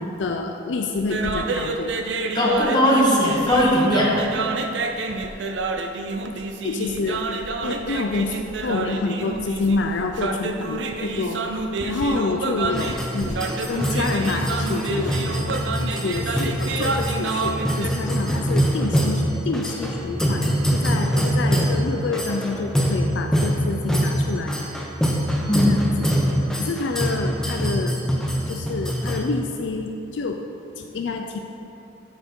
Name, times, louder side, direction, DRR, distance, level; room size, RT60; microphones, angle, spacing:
voice 1, 0.0-2.1 6.6-7.2 7.6-15.2 15.9-24.6 25.6-25.8 26.6-28.0 28.5-30.4 30.8-31.4, left 3 dB, 75° left, 4 dB, 0.4 m, -28 dB
sound 1, 1.0-17.9, right 3 dB, 75° right, 0.5 m, -28 dB
voice 2, 2.3-4.2 25.5-25.7, equal, 25° left, -5 dB, 1.5 m, -19 dB
sound 2, 12.7-29.2, equal, 5° left, 0.7 m, -24 dB
12.5 x 4.4 x 4.5 m, 2.8 s
head